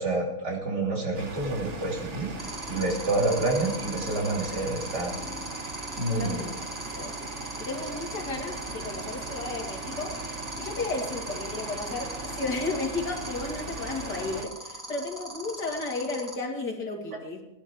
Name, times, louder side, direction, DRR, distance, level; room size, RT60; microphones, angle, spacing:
voice 1, 0.0-2.3 2.7-5.2 6.0-6.4, right 2 dB, 75° right, -2 dB, 4.0 m, -28 dB
sound 1, 1.1-14.4, right 3 dB, 45° right, 1.7 m, -39 dB
sound 2, 2.4-16.3, right 1 dB, 10° right, 1.9 m, -39 dB
voice 2, 6.2-6.5 6.9-7.2 7.6-10.2 10.6-17.4, left 3 dB, 75° left, 0 dB, 3.0 m, -33 dB
17.0 x 11.5 x 4.8 m, 0.88 s
omnidirectional pair, 1.8 m